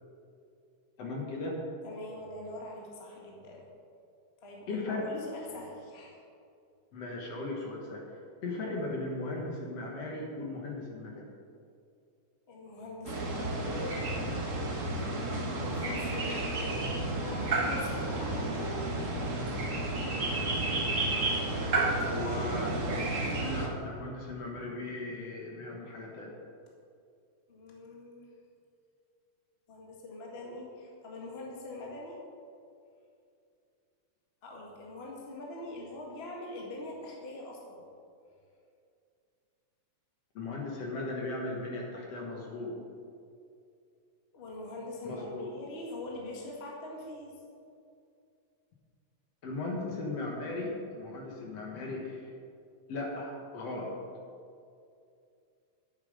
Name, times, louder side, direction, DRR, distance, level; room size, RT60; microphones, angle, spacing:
voice 1, 1.0-1.6 4.7-5.1 6.9-8.0 8.4-11.3 22.0-22.9 23.4-26.3 40.4-42.8 45.0-45.5 49.4-52.3 52.9-53.9, left 2 dB, 60° left, -1 dB, 2.4 m, -37 dB
voice 2, 1.8-3.6 4.4-6.2 12.5-15.0 15.6-18.9 21.9-22.9 27.5-28.3 29.7-32.2 34.4-37.8 44.3-47.3, left 1 dB, 25° left, -2 dB, 1.6 m, -43 dB
sound 1, 13.0-23.7, right 2 dB, 45° right, 1.0 m, -31 dB
10.5 x 8.7 x 5.4 m, 2.5 s
omnidirectional pair, 3.3 m